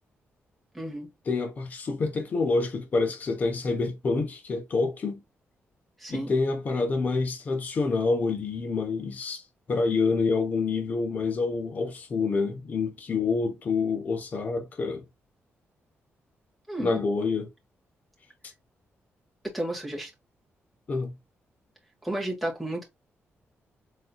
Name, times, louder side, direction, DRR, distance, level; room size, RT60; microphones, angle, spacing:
voice 1, 0.7-1.1 6.0-6.3 16.7-17.0 19.5-20.1 22.0-22.8, right 1 dB, ahead, 1.7 m, -32 dB
voice 2, 1.3-5.2 6.1-9.4 9.7-15.0 16.8-17.5 20.9-21.2, left 4 dB, 40° left, 1.0 m, -27 dB
4.2 x 3.7 x 2.3 m
wide cardioid pair, 165°, 5 cm